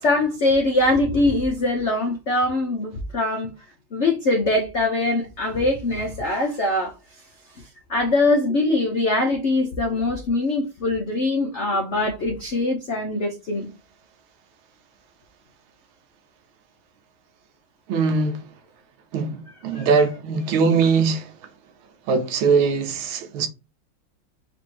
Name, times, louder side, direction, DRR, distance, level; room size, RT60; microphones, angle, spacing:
voice 1, 0.0-3.5 3.9-6.9 7.9-13.7 19.7-19.9, left 2 dB, 75° left, 0.6 m, -22 dB
voice 2, 17.9-18.4 19.1-19.4 19.6-21.2 22.1-23.5, right 5 dB, 90° right, 1.7 m, -21 dB
4.1 x 2.6 x 4.6 m
omnidirectional pair, 2.3 m